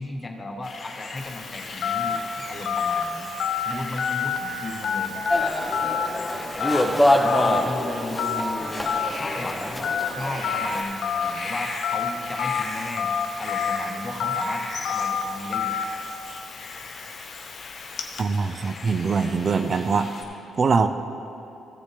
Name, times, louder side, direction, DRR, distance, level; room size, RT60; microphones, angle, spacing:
voice 1, 0.0-3.3 3.6-5.2 7.2-9.8 10.2-13.1 13.4-15.8, left 2 dB, 25° left, 3 dB, 1.1 m, -35 dB
sound 1, 0.6-20.2, left 3 dB, 50° left, 1.2 m, -39 dB
Telephone, 1.2-18.2, left 6 dB, 65° left, 0.7 m, -29 dB
sound 2, 5.3-10.8, left 1 dB, 5° left, 0.8 m, -25 dB
voice 2, 18.2-20.1 20.6-20.9, right 5 dB, 45° right, 9 dB, 0.4 m, -22 dB
15.0 x 7.2 x 3.3 m, 2.8 s
cardioid pair, 90°, 0 cm